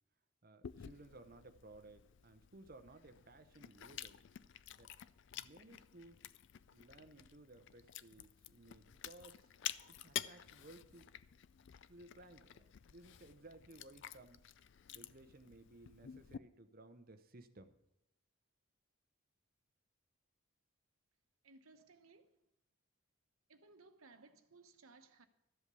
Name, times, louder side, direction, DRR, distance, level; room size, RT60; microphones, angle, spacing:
voice 1, 0.4-4.2 4.8-4.9 5.3-6.2 6.7-11.2 11.9-14.5 14.9-17.7, right 2 dB, 40° right, 0.8 m, -59 dB
Chewing mastication, 0.6-16.4, left 11 dB, 55° left, 0.4 m, -50 dB
voice 2, 21.4-22.4 23.5-25.3, right 3 dB, 75° right, 1.0 m, -62 dB
13.0 x 7.9 x 6.9 m
head